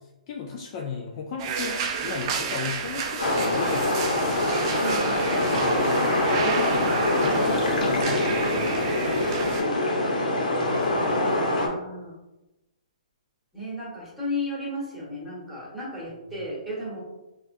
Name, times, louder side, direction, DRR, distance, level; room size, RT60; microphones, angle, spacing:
voice 1, 0.3-4.4 6.4-9.8, left 5 dB, 35° left, 0 dB, 0.4 m, -36 dB
sound 1, 1.4-9.6, right 6 dB, 35° right, 0.4 m, -32 dB
sound 2, 3.2-11.7, left 1 dB, 90° left, 1.0 m, -24 dB
voice 2, 4.8-5.5 10.8-12.1 13.5-17.0, left 1 dB, ahead, -8 dB, 1.3 m, -34 dB
4.1 x 2.4 x 2.6 m, 0.99 s
hypercardioid pair, 150°, 4 cm